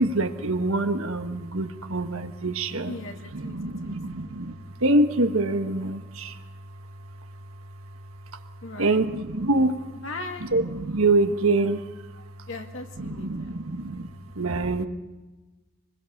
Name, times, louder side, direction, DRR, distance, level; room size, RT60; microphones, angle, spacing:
voice 1, 0.0-2.9 3.3-4.5 4.8-6.4 8.8-9.8 10.4-11.8 13.0-14.1 14.4-14.9, right 2 dB, 70° right, 7 dB, 1.5 m, -25 dB
voice 2, 2.9-4.0 8.6-9.0 10.0-10.5 12.5-13.5, left 2 dB, 60° left, 4 dB, 2.4 m, -38 dB
26.5 x 21.0 x 6.7 m, 1.2 s
head